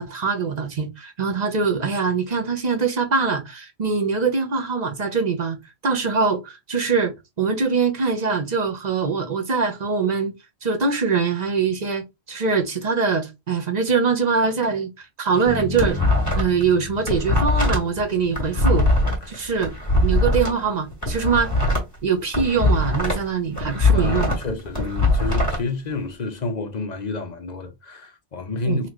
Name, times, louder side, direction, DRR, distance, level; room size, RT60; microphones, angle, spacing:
voice 1, 0.0-5.6 5.8-10.3 10.6-14.9 15.2-16.0 16.3-18.9 19.3-19.7 20.0-21.5 22.0-24.3 28.6-28.8, right 5 dB, 45° right, 0.9 m, -23 dB
sound 1, 15.4-16.6 16.9-20.5 20.9-23.3 23.6-25.6, left 2 dB, 15° left, 2.2 m, -21 dB
Bass guitar, 15.5-19.5, right 1 dB, 90° right, 1.8 m, -36 dB
voice 2, 23.9-28.9, left 3 dB, 45° left, 0.8 m, -29 dB
4.1 x 3.0 x 3.0 m
omnidirectional pair, 1.1 m